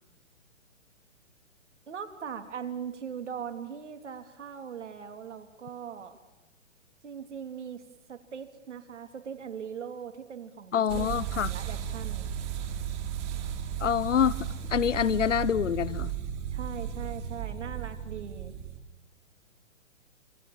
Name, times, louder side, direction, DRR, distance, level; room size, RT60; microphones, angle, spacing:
voice 1, 1.9-6.2 7.0-12.3 16.5-18.5, right 7 dB, 65° right, 3.2 m, -40 dB
voice 2, 10.7-11.5 13.8-14.4 14.7-16.1, left 8 dB, 70° left, 1.0 m, -26 dB
sound 1, 10.9-18.8, right 9 dB, 30° right, 3.2 m, -35 dB
27.0 x 25.5 x 7.4 m
figure-of-eight pair, 130°, 38 cm